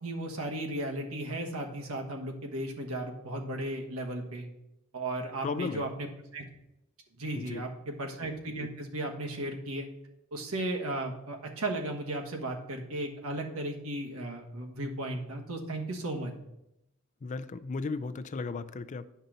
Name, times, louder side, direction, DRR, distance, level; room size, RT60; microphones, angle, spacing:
voice 1, 0.0-4.5 4.9-6.4 7.2-9.9 10.3-16.3, right 1 dB, 85° right, 2 dB, 1.3 m, -35 dB
voice 2, 5.4-5.9 7.3-7.6 17.2-19.1, left 4 dB, 35° left, 12 dB, 0.4 m, -35 dB
10.0 x 5.4 x 3.9 m, 0.85 s
head